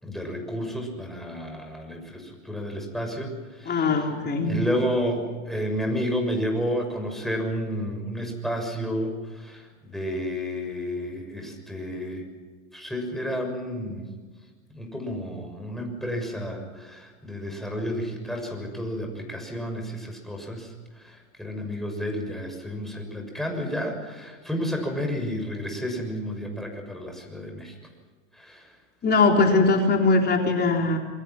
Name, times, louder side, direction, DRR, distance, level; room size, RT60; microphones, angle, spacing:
voice 1, 0.0-4.0 4.4-12.3 12.7-14.1 14.7-27.8 28.3-28.7, equal, ahead, 3 dB, 6.6 m, -31 dB
voice 2, 3.7-4.6 29.0-31.0, left 3 dB, 25° left, 2 dB, 3.9 m, -21 dB
27.5 x 22.0 x 6.1 m, 1.4 s
hypercardioid pair, 95°, 39 cm